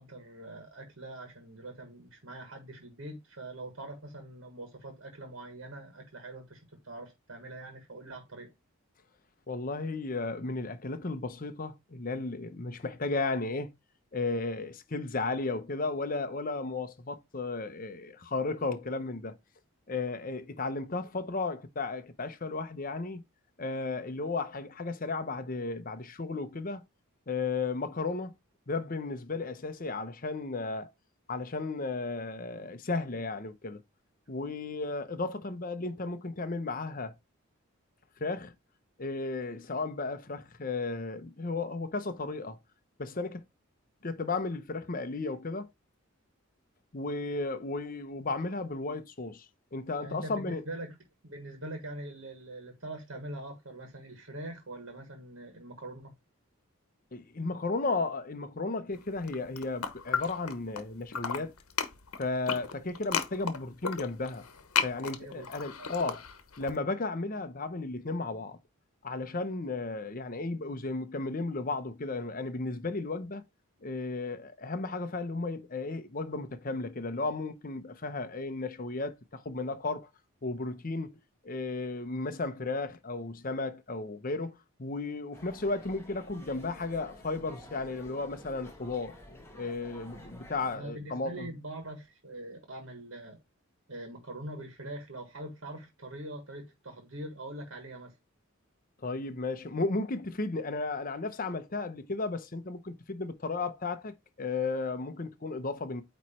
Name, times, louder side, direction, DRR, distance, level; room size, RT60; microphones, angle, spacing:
voice 1, 0.0-8.5 50.0-51.0 51.2-56.1 65.2-65.5 65.8-65.9 90.7-93.4 93.9-98.1, right 1 dB, 65° right, 1.6 m, -43 dB
voice 2, 9.5-13.7 14.1-19.4 19.9-23.2 23.6-26.8 27.3-28.3 28.7-30.9 31.3-33.8 34.3-37.1 38.2-38.5 39.0-42.6 43.0-43.4 44.0-45.7 46.9-50.6 57.1-61.5 62.2-64.5 64.8-66.2 66.6-68.6 69.0-73.4 73.8-80.1 80.4-89.2 89.5-91.5 99.0-106.0, left 3 dB, 40° left, 0.8 m, -34 dB
sound 1, 59.2-60.8 61.1-66.7, left 7 dB, 90° left, 1.0 m, -34 dB
sound 2, 85.3-90.8, left 1 dB, 10° left, 1.5 m, -51 dB
8.9 x 3.1 x 4.3 m
head